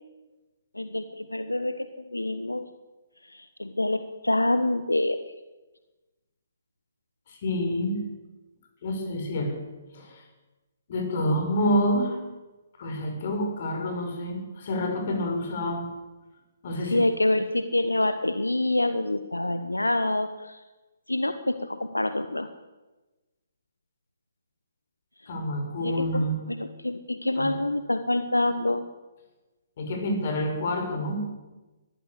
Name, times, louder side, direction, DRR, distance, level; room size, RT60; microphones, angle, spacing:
voice 1, 0.7-2.6 3.2-5.2 16.8-20.6 21.1-22.5 25.8-28.9, left 1 dB, 85° left, 10 dB, 1.1 m, -26 dB
voice 2, 7.3-8.0 8.8-9.6 9.9-10.2 10.9-12.2 12.8-15.9 16.6-17.0 25.3-26.4 27.4-27.5 29.8-31.2, equal, 45° left, 4 dB, 5.8 m, -28 dB
21.5 x 14.5 x 8.4 m, 1.1 s
figure-of-eight pair, 130°, 0 cm